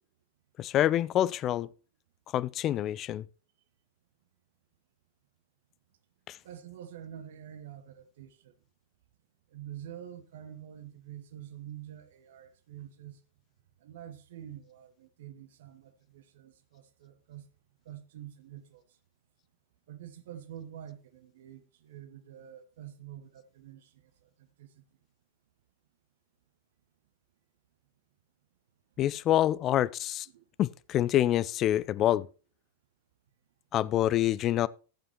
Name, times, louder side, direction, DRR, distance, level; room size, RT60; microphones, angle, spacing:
voice 1, 0.6-1.7 2.3-3.3 6.3-6.4 29.0-30.3 30.6-32.3 33.7-34.7, left 12 dB, 30° left, 0.4 m, -26 dB
voice 2, 6.4-8.5 9.5-13.2 13.8-17.5 17.8-18.8 19.9-24.8 29.5-29.6 30.3-30.4, right 10 dB, 55° right, 1.2 m, -47 dB
14.0 x 8.6 x 3.1 m
figure-of-eight pair, 90°, 0 cm